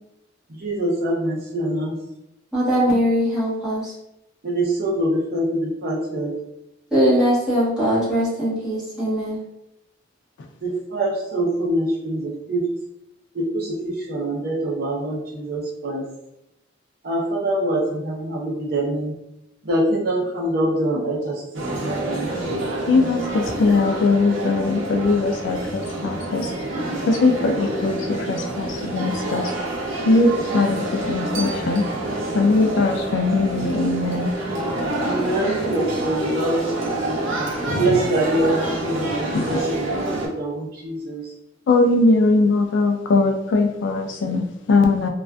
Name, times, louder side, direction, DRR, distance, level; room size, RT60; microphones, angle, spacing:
voice 1, 0.6-1.9 4.4-6.3 10.6-12.7 13.3-16.0 17.0-19.1 19.6-22.3 35.0-37.2 37.8-40.0 40.2-41.2, right 1 dB, 50° right, -3 dB, 0.7 m, -24 dB
voice 2, 2.5-3.9 6.9-9.4, equal, 5° right, -11 dB, 1.0 m, -20 dB
sound 1, 21.5-40.3, right 1 dB, 90° right, 0.6 m, -27 dB
voice 3, 22.9-26.5 27.1-29.5 30.0-31.9 32.3-34.3 37.7-37.8 39.3-39.6 41.7-45.1, left 3 dB, 70° left, 4 dB, 0.3 m, -20 dB
2.4 x 2.3 x 2.2 m, 0.86 s
head